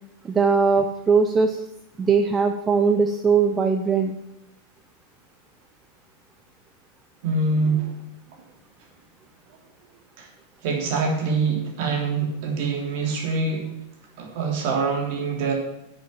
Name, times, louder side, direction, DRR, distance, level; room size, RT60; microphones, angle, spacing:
voice 1, 0.2-1.6 2.0-4.2, right 5 dB, 20° right, 7 dB, 0.7 m, -20 dB
voice 2, 7.2-8.0 10.2-10.3 10.6-13.7 14.2-15.5, right 4 dB, 50° right, 1 dB, 3.2 m, -25 dB
10.5 x 7.2 x 7.2 m, 0.86 s
figure-of-eight pair, 90°, 0 cm